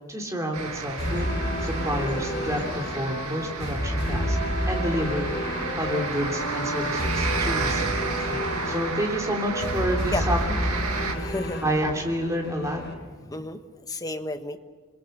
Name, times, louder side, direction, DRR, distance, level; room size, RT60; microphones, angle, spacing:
voice 1, 0.1-1.3 1.6-4.4 4.7-5.3 5.8-10.4 10.7-10.8 11.6-12.8, equal, 15° right, 1 dB, 3.3 m, -29 dB
sound 1, 0.5-11.1, right 4 dB, 90° right, 2.2 m, -32 dB
sound 2, 1.0-12.9, equal, 45° left, 6.4 m, -30 dB
voice 2, 11.1-11.6 13.2-14.6, left 2 dB, 15° left, 7 dB, 1.2 m, -32 dB
27.5 x 21.5 x 6.7 m, 1.4 s
head